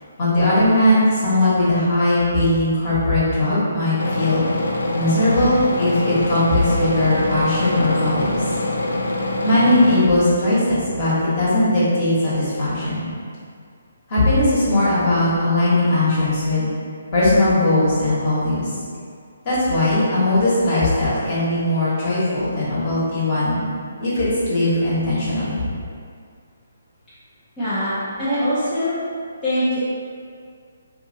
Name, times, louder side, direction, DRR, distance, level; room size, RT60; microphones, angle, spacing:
voice 1, 0.2-4.4 4.9-8.4 9.4-13.1 14.1-16.7 17.1-18.7 19.4-23.6 24.0-25.6, left 1 dB, 30° left, -10 dB, 1.2 m, -19 dB
sound 1, 4.0-10.0, left 2 dB, 85° left, 0.4 m, -24 dB
voice 2, 27.6-29.0 29.4-29.9, equal, 10° left, -16 dB, 0.6 m, -22 dB
2.7 x 2.5 x 3.8 m, 2.2 s
hypercardioid pair, 165°, 0 cm